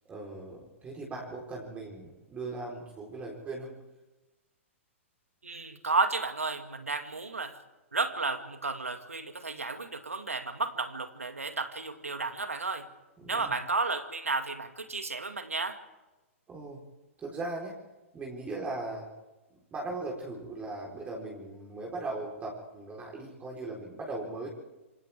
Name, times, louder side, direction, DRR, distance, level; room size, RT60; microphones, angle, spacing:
voice 1, 0.1-3.7 13.2-13.6 16.5-16.8 17.2-17.8 18.1-19.1 19.7-24.5, right 2 dB, 20° right, -1 dB, 4.2 m, -38 dB
voice 2, 5.4-7.6 7.9-12.9 13.3-15.8, right 3 dB, 80° right, 8 dB, 2.2 m, -32 dB
27.0 x 26.5 x 3.6 m, 1.1 s
figure-of-eight pair, 115°, 7 cm